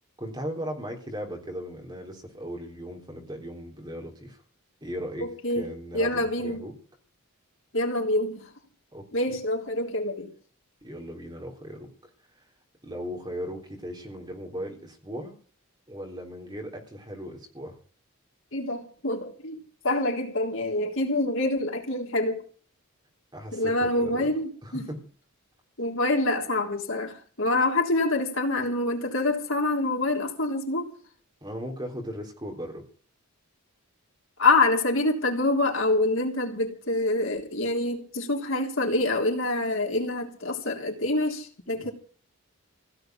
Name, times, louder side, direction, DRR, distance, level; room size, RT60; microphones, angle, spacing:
voice 1, 0.2-4.4 4.8-5.3 5.6-6.8 8.9-9.1 10.8-12.1 12.8-15.4 15.9-17.8 23.3-24.3 24.6-25.0 31.4-32.8 41.7-41.9, equal, 20° right, 3.8 m, -37 dB
voice 2, 5.2-5.7 5.9-6.6 7.7-8.5 9.1-10.3 18.5-19.6 19.8-22.4 23.5-24.9 25.8-30.9 34.4-41.9, left 2 dB, 65° left, 3.5 m, -26 dB
16.5 x 8.2 x 9.3 m
head